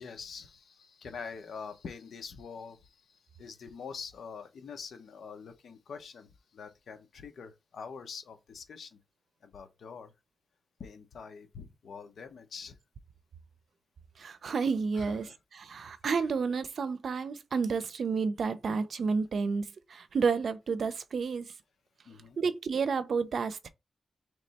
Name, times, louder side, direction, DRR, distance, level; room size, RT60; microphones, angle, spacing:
voice 1, 0.0-9.0 9.4-10.1 10.8-12.8 14.9-15.3 22.0-22.4, left 5 dB, 75° left, 1.0 m, -45 dB
voice 2, 14.2-15.3 15.6-21.5 22.4-23.7, right 5 dB, 60° right, 0.6 m, -30 dB
3.5 x 3.2 x 4.2 m
wide cardioid pair, 130°, 0 cm